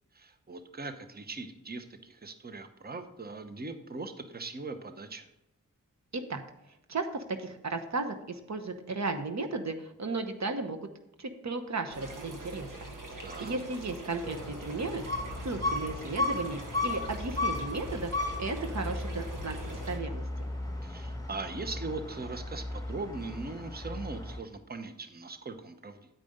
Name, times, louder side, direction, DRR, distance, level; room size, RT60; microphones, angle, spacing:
voice 1, 0.1-5.3 13.2-13.6 20.8-26.1, right 3 dB, 30° right, 9 dB, 0.9 m, -40 dB
voice 2, 6.9-10.8 11.2-12.7 13.1-18.1 18.4-20.2, right 3 dB, 55° right, 7 dB, 0.9 m, -35 dB
sound 1, 11.9-20.0, right 1 dB, 75° right, 1.5 m, -43 dB
sound 2, 14.2-24.4, left 2 dB, 10° left, 1.4 m, -35 dB
8.9 x 5.1 x 6.5 m, 0.84 s
cardioid pair, 50°, 32 cm